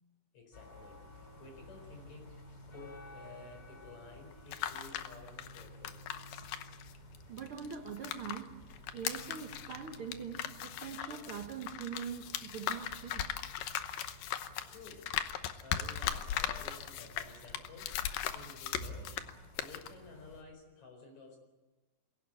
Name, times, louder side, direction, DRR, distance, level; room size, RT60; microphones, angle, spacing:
voice 1, 0.3-6.0 14.7-15.1 15.6-19.2 19.6-21.4, left 3 dB, 55° left, 5.6 m, -53 dB
sound 1, 0.5-20.4, left 1 dB, 30° left, 3.7 m, -53 dB
sound 2, 4.3-8.4 8.7-19.3 19.6-19.9, left 10 dB, 85° left, 2.7 m, -38 dB
voice 2, 7.3-8.6 8.9-13.3, right 7 dB, 65° right, 1.3 m, -43 dB
22.0 x 17.0 x 9.0 m
omnidirectional pair, 3.9 m